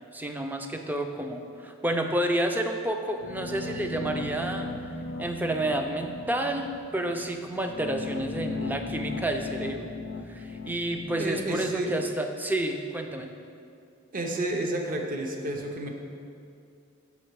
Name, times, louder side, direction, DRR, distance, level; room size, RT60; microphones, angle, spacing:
voice 1, 0.1-4.7 5.2-9.9 10.3-13.3, right 1 dB, 10° right, 5 dB, 0.3 m, -30 dB
sound 1, 3.2-12.1, left 2 dB, 70° left, 0.4 m, -37 dB
voice 2, 11.2-12.0 14.1-15.9, right 1 dB, 40° right, 2 dB, 0.7 m, -30 dB
6.6 x 5.4 x 4.6 m, 2.5 s
head